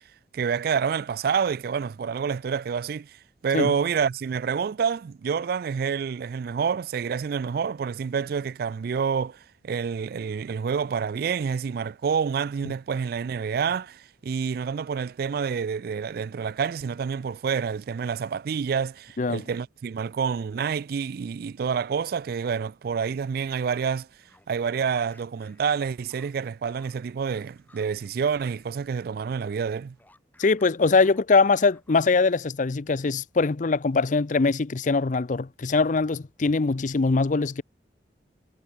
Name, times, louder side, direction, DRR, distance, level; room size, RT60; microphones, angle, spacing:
voice 1, 0.3-3.2 3.4-24.1 24.5-29.9, right 6 dB, 55° right, 0.3 m, -28 dB
sound 1, 24.1-28.8 29.1-32.4, left 2 dB, 10° left, 7.9 m, -61 dB
voice 2, 30.4-37.6, left 4 dB, 45° left, 0.6 m, -22 dB
head